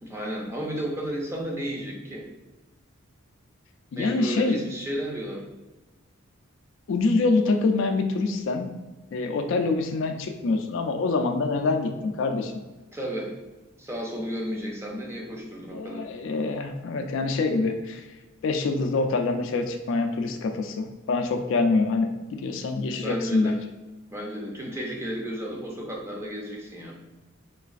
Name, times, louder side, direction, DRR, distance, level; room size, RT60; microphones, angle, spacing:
voice 1, 0.0-2.3 4.0-5.4 12.9-13.4 13.8-16.1 23.0-23.6 24.1-26.9, equal, 10° right, -1 dB, 0.4 m, -33 dB
voice 2, 3.9-4.6 6.9-8.7 9.1-12.5 15.7-18.1 18.4-23.6, left 3 dB, 60° left, 5 dB, 0.3 m, -25 dB
3.8 x 2.4 x 2.4 m, 1.1 s
head